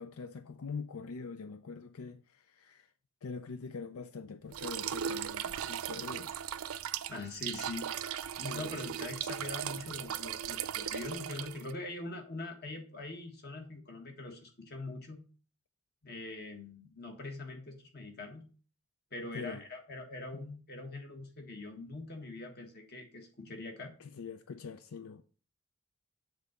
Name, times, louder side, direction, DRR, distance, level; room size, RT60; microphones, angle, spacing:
voice 1, 0.0-2.9 3.2-6.3 8.4-8.7 19.3-19.6 20.3-20.4 24.0-25.2, left 5 dB, 90° left, 0.5 m, -44 dB
sound 1, 4.5-11.7, right 9 dB, 85° right, 0.5 m, -38 dB
voice 2, 7.1-7.9 8.4-15.2 16.0-18.4 19.1-23.9, left 2 dB, 50° left, 1.6 m, -43 dB
7.2 x 3.9 x 6.6 m
head